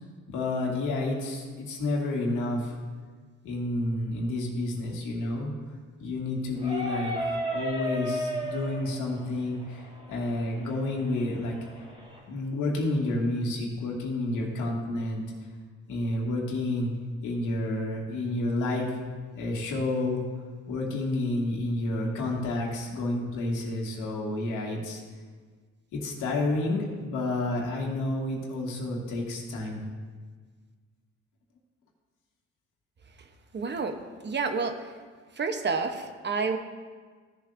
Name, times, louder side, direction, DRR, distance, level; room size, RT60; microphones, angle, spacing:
voice 1, 0.3-2.7 3.4-5.5 6.0-11.8 12.3-15.2 15.9-16.9 17.2-18.9 19.4-20.2 20.7-25.0 25.9-29.8, left 2 dB, 85° left, -2 dB, 2.1 m, -30 dB
sound 1, 6.6-12.2, equal, 20° right, 2.5 m, -35 dB
voice 2, 33.5-34.9 35.4-36.6, right 4 dB, 35° right, 7 dB, 0.9 m, -29 dB
16.0 x 7.3 x 2.6 m, 1.5 s
cardioid pair, 90°, 30 cm